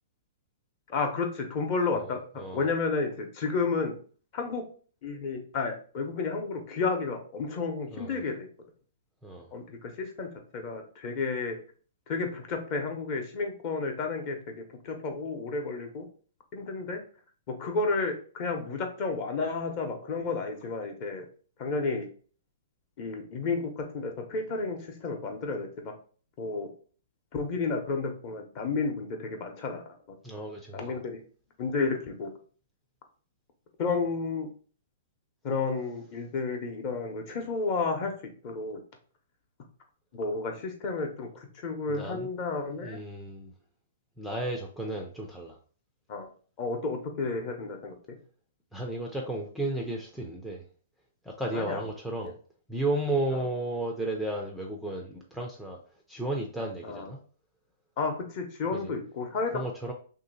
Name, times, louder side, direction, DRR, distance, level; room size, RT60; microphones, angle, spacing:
voice 1, 0.9-3.9 4.3-4.6 5.0-8.5 9.5-11.6 12.1-16.1 16.5-17.0 17.5-21.3 21.6-22.1 23.0-25.9 26.4-26.7 27.3-29.8 30.7-31.2 31.6-32.3 33.8-34.5 35.4-38.1 38.4-38.8 40.1-43.0 46.1-46.3 46.6-47.9 51.5-51.8 52.2-52.3 56.8-57.1 58.0-59.6, left 4 dB, 35° left, 4 dB, 0.8 m, -31 dB
voice 2, 7.9-8.2 9.2-9.5 30.2-30.8 41.9-42.3 42.8-43.5 44.2-45.6 48.7-50.6 51.2-52.3 52.7-55.8 56.1-57.2 58.7-58.9 59.5-59.9, right 1 dB, ahead, 0 dB, 0.4 m, -33 dB
3.0 x 2.7 x 4.0 m, 0.42 s
hypercardioid pair, 160°, 0 cm